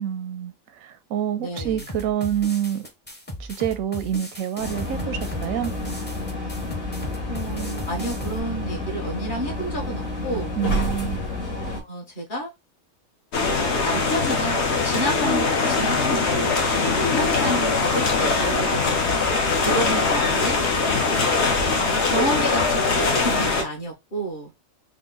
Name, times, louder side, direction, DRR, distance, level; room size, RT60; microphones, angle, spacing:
voice 1, 0.0-2.9 3.4-5.7 10.6-11.2, right 10 dB, 90° right, 1.0 m, -27 dB
voice 2, 1.4-1.8 7.3-10.5 11.5-12.5 13.5-20.6 21.6-24.5, right 1 dB, 40° left, 1.5 m, -30 dB
sound 1, 1.6-8.4, equal, 10° left, 0.5 m, -37 dB
sound 2, 4.6-11.8, left 1 dB, 80° left, 1.7 m, -29 dB
sound 3, 13.3-23.6, left 4 dB, 60° left, 1.1 m, -22 dB
3.8 x 2.2 x 3.7 m
omnidirectional pair, 1.4 m